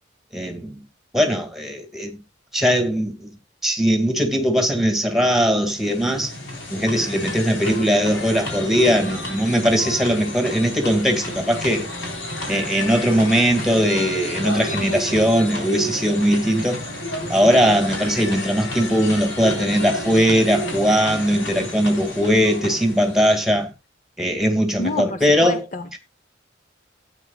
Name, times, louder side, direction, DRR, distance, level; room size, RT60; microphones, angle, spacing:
voice 1, 0.3-0.8 1.1-2.2 2.5-3.3 3.6-6.3 6.7-11.8 12.5-16.8 17.3-23.7 24.2-25.6, equal, ahead, 2.0 m, -20 dB
sound 1, 5.5-23.6, left 1 dB, 85° left, 4.0 m, -31 dB
voice 2, 24.8-26.0, left 3 dB, 45° left, 0.8 m, -28 dB
16.0 x 9.0 x 2.3 m
head